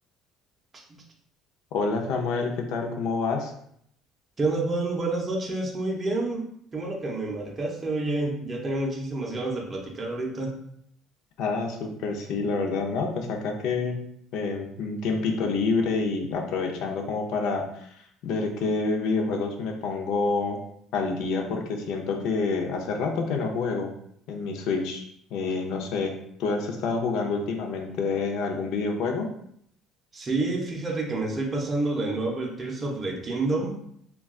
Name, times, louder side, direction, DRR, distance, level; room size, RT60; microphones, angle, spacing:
voice 1, 1.7-3.5 11.4-14.0 14.3-17.9 18.2-20.6 20.9-23.9 24.3-25.0 25.3-26.1 26.4-29.3, left 4 dB, 70° left, 2 dB, 0.5 m, -27 dB
voice 2, 4.4-10.5 30.1-33.8, right 2 dB, 25° right, -1 dB, 0.5 m, -28 dB
2.3 x 2.2 x 3.6 m, 0.70 s
cardioid pair, 135°, 0 cm